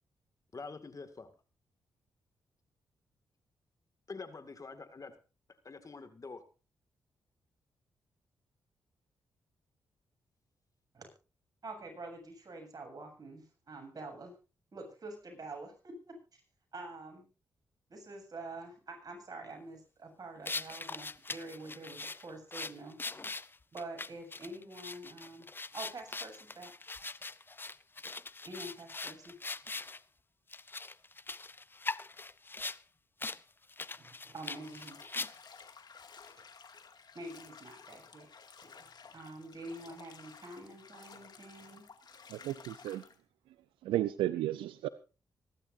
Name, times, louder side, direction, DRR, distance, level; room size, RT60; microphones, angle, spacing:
voice 1, 0.5-1.3 4.1-5.1 5.6-6.4, left 4 dB, 40° left, 8 dB, 2.2 m, -46 dB
voice 2, 11.6-14.3 14.7-16.1 16.7-17.3 17.9-23.0 23.7-25.5 25.7-26.7 28.4-29.4 34.0-35.0 36.4-36.5 37.1-38.3 38.6-41.8, right 2 dB, 50° right, 2 dB, 7.7 m, -46 dB
sound 1, 20.4-30.0 30.5-32.8 33.2-33.4 33.7-35.6, left 3 dB, 25° left, 0.6 m, -41 dB
Bathtub (filling or washing), 34.4-43.2, left 5 dB, 60° left, 2.3 m, -54 dB
voice 3, 42.3-43.0 43.8-44.9, right 14 dB, 85° right, 14 dB, 0.6 m, -33 dB
24.5 x 12.0 x 2.7 m, 0.33 s
supercardioid pair, 45°, 8 cm